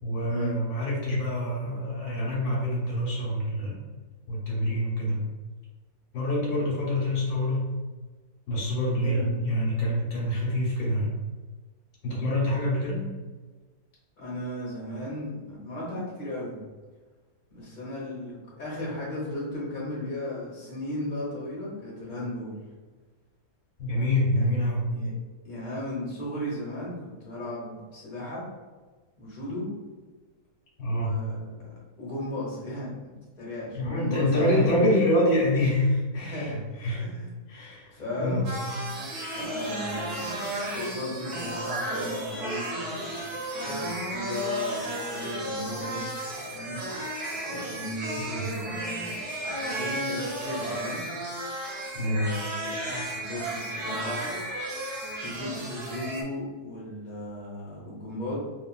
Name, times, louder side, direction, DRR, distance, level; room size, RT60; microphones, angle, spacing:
voice 1, 0.0-3.8 4.3-5.2 6.1-7.7 8.5-11.1 12.0-13.1 23.8-24.8 30.8-31.1 33.7-37.1 37.5-38.4 48.1-48.5 51.9-52.3, left 1 dB, 75° left, -4 dB, 1.3 m, -26 dB
voice 2, 8.9-9.3 14.2-16.6 17.5-22.5 24.3-24.5 24.9-25.1 25.4-28.4 29.2-29.7 30.8-31.7 32.0-34.9 36.1-36.6 37.0-37.3 37.9-38.4 39.3-46.8 47.4-51.3 52.0-52.8 53.1-54.2 55.2-58.4, left 1 dB, 35° left, -5 dB, 0.9 m, -36 dB
sound 1, 38.5-56.2, right 1 dB, 85° right, 1.2 m, -33 dB
3.0 x 2.4 x 2.3 m, 1.3 s
omnidirectional pair, 1.6 m